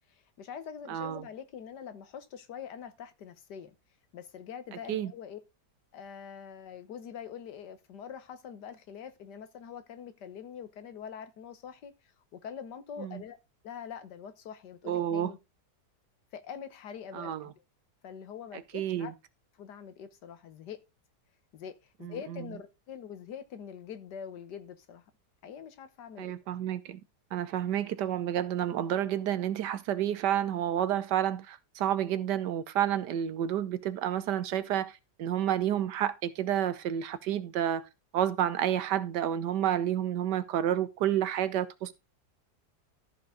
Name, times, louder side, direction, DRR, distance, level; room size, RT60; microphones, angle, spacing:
voice 1, 0.1-3.8 4.1-5.4 5.9-13.4 13.6-15.4 16.3-17.6 18.0-19.1 19.6-20.8 21.5-25.0 25.4-26.3, left 8 dB, 85° left, 1.7 m, -44 dB
voice 2, 0.9-1.2 4.9-5.1 13.0-13.2 14.9-15.3 17.1-17.5 18.7-19.1 22.0-22.4 26.2-27.0 27.3-37.8 38.1-42.0, right 10 dB, 90° right, 1.5 m, -30 dB
13.5 x 4.8 x 3.8 m
omnidirectional pair, 1.8 m